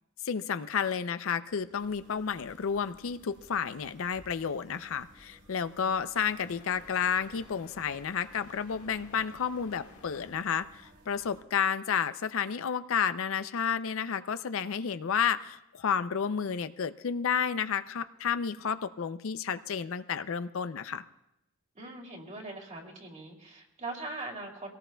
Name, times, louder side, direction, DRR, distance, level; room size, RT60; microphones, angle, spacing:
voice 1, 0.2-21.0, left 7 dB, 65° left, 12 dB, 0.5 m, -31 dB
sound 1, 1.5-10.8, left 3 dB, 90° left, 1.8 m, -58 dB
sound 2, 1.7-11.4, equal, 55° right, 2.9 m, -58 dB
voice 2, 21.7-24.7, right 2 dB, 35° right, 1 dB, 2.6 m, -41 dB
24.0 x 18.0 x 2.3 m, 0.86 s
head